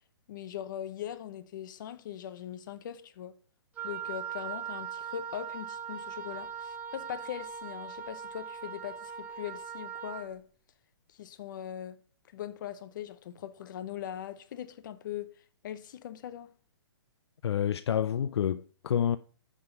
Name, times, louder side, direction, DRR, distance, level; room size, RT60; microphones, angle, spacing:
voice 1, 0.3-3.4 3.8-10.5 11.1-12.0 12.3-15.3 15.6-16.5, left 10 dB, 45° left, 0.7 m, -41 dB
Wind instrument woodwind instrument, 3.8-10.3, right 8 dB, 10° right, 0.5 m, -40 dB
voice 2, 17.4-19.2, left 9 dB, 70° left, 0.4 m, -28 dB
9.8 x 3.7 x 5.4 m
hypercardioid pair, 150°, 14 cm